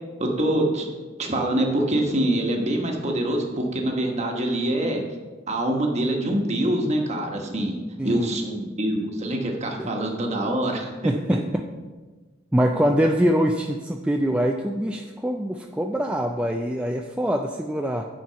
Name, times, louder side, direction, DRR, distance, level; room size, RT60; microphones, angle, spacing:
voice 1, 0.2-0.9 1.2-5.0 5.5-7.8 8.0-11.1, right 1 dB, 35° right, 2 dB, 1.2 m, -25 dB
voice 2, 11.0-11.6 12.5-18.0, equal, 5° right, 2 dB, 0.3 m, -24 dB
9.1 x 4.5 x 5.6 m, 1.3 s
head